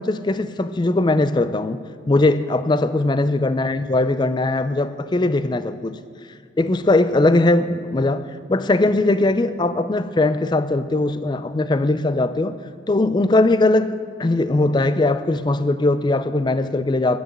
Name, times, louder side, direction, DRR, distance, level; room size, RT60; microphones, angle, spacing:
voice 1, 0.0-6.0 6.6-12.6 12.9-17.2, left 2 dB, 25° left, 0.4 m, -20 dB
10.5 x 9.4 x 7.3 m
head